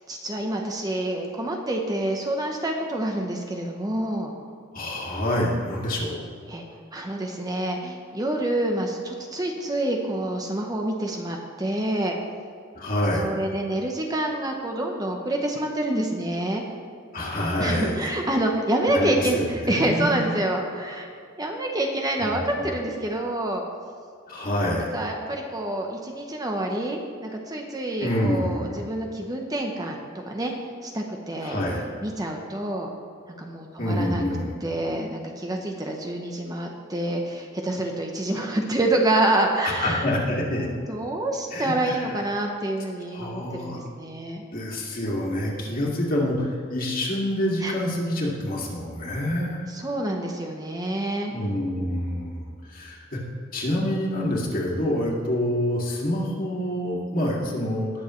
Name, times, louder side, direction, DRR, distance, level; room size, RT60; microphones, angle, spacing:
voice 1, 0.1-4.3 6.5-6.6 6.9-12.2 13.1-16.6 17.6-21.1 21.4-23.6 24.9-30.5 30.8-31.6 32.0-32.9 33.3-34.2 34.6-40.0 40.6-44.4 47.6-47.8 49.7-51.3, right 1 dB, 20° right, 1 dB, 0.8 m, -27 dB
voice 2, 4.7-6.2 12.7-13.3 17.1-18.1 18.9-20.2 22.2-22.4 24.3-24.9 28.0-28.8 31.4-31.9 33.8-34.6 39.8-40.7 41.5-42.1 43.1-43.8 44.5-49.6 51.3-52.3 52.7-53.2 53.5-57.9, left 1 dB, 45° left, -3 dB, 2.2 m, -27 dB
19.0 x 7.1 x 3.1 m, 2.3 s
head